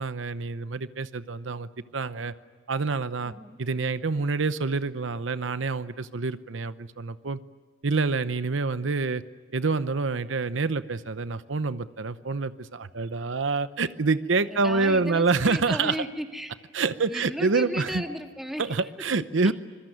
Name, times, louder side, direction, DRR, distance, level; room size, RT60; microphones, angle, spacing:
voice 1, 0.0-2.3 2.7-3.3 3.6-7.4 7.8-9.2 9.5-16.0 16.7-18.0 18.6-19.5, right 4 dB, 80° right, 13 dB, 0.8 m, -27 dB
voice 2, 3.2-3.6 14.5-16.5 17.0-18.7 19.4-19.5, equal, ahead, 3 dB, 2.1 m, -35 dB
25.5 x 22.0 x 9.3 m, 1.4 s
head